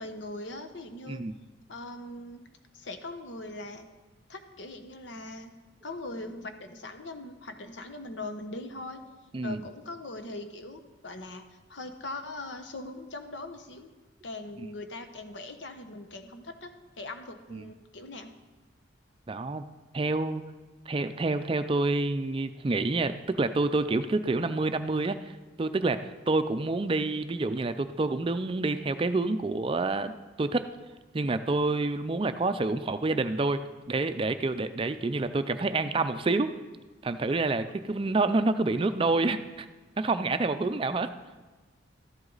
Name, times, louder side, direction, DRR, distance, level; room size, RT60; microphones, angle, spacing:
voice 1, 0.0-1.2 1.7-2.5 2.7-3.9 4.3-5.5 5.8-9.0 9.4-11.4 11.7-13.9 14.2-16.7 17.0-18.3 40.6-40.7, left 2 dB, 70° left, 7 dB, 1.0 m, -41 dB
voice 2, 19.3-19.6 19.9-20.4 20.9-25.3 25.6-30.7 31.1-33.6 33.9-36.5 37.0-39.7 40.0-41.1, right 3 dB, 30° right, 10 dB, 0.4 m, -28 dB
13.0 x 11.0 x 4.0 m, 1.3 s
head